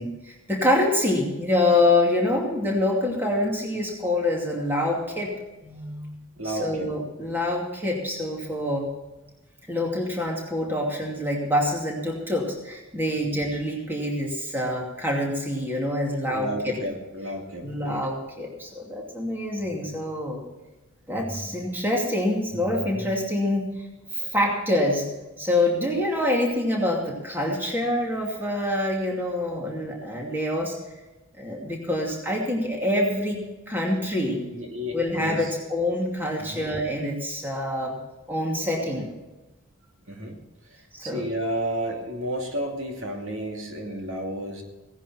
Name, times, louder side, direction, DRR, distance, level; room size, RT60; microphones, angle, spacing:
voice 1, 0.0-5.3 5.6-6.1 6.4-8.9 9.7-16.8 17.6-20.4 21.1-23.9 24.1-25.1 25.4-30.8 31.3-34.4 34.9-38.0 38.3-39.1 40.9-41.3, left 1 dB, 10° right, -1 dB, 2.6 m, -26 dB
voice 2, 6.4-6.9 16.2-18.1 34.5-35.5 36.4-36.6 40.1-40.4 41.0-44.6, right 1 dB, 70° right, 1 dB, 2.5 m, -32 dB
17.0 x 10.5 x 4.4 m, 1.1 s
head